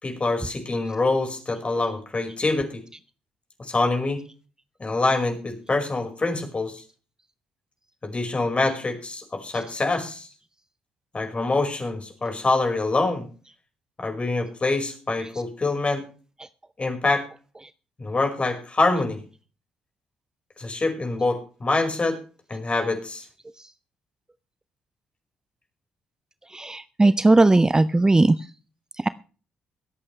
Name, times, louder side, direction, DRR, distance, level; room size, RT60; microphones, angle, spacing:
voice 1, 0.0-2.8 3.7-4.2 4.8-6.8 8.0-10.3 11.1-13.3 14.0-16.0 16.8-17.3 18.0-19.2 20.6-22.2 22.5-23.2, left 3 dB, 30° left, 4 dB, 5.1 m, -25 dB
voice 2, 26.5-28.3, right 2 dB, 15° right, 15 dB, 0.6 m, -17 dB
23.5 x 8.6 x 3.3 m, 0.37 s
figure-of-eight pair, 40°, 4 cm